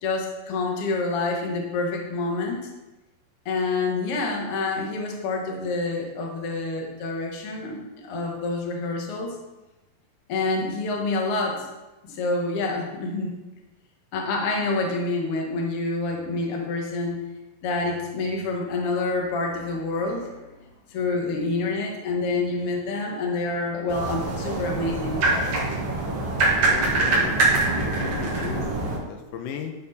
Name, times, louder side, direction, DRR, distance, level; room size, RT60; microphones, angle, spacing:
voice 1, 0.0-2.6 3.5-9.4 10.3-11.7 12.0-13.4 14.1-17.2 17.6-20.5 20.9-25.2, left 3 dB, 55° left, 1 dB, 1.7 m, -27 dB
sound 1, 23.9-29.0, right 2 dB, 50° right, 2.0 m, -24 dB
voice 2, 26.6-29.7, left 7 dB, 85° left, 5 dB, 2.2 m, -36 dB
11.0 x 4.4 x 4.0 m, 1.1 s
omnidirectional pair, 3.8 m